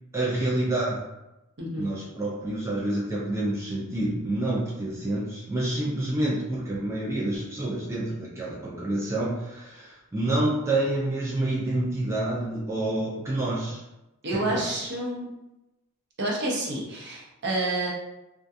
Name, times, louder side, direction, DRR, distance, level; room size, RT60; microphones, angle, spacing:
voice 1, 0.1-1.1 1.8-13.8 14.3-14.9, right 1 dB, 10° right, -7 dB, 0.4 m, -28 dB
voice 2, 1.6-1.9 14.2-15.3 16.2-17.9, right 1 dB, 50° right, -3 dB, 0.6 m, -29 dB
2.3 x 2.3 x 2.6 m, 0.95 s
head